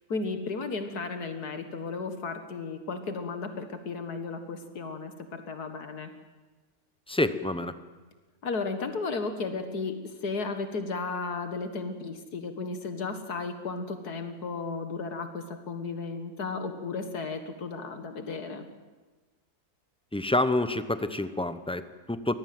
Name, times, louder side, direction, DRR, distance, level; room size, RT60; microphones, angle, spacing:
voice 1, 0.1-6.1 8.4-18.7, left 4 dB, 75° left, 8 dB, 2.2 m, -34 dB
voice 2, 7.1-7.7 20.1-22.3, left 2 dB, 5° left, 11 dB, 0.5 m, -28 dB
24.0 x 18.5 x 7.8 m, 1.2 s
omnidirectional pair, 1.7 m